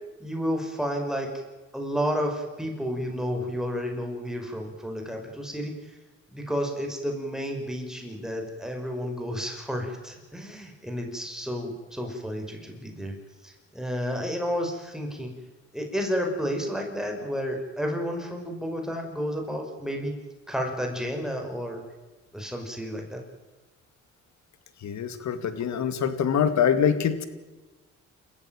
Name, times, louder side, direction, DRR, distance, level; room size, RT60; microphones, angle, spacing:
voice 1, 0.2-1.3 1.7-5.9 6.3-13.1 13.4-15.3 15.7-20.2 20.5-21.9 22.3-23.2, equal, ahead, 2 dB, 5.6 m, -31 dB
voice 2, 24.8-27.3, left 8 dB, 65° left, 11 dB, 2.4 m, -24 dB
28.0 x 15.0 x 9.1 m, 1.2 s
cardioid pair, 90°, 30 cm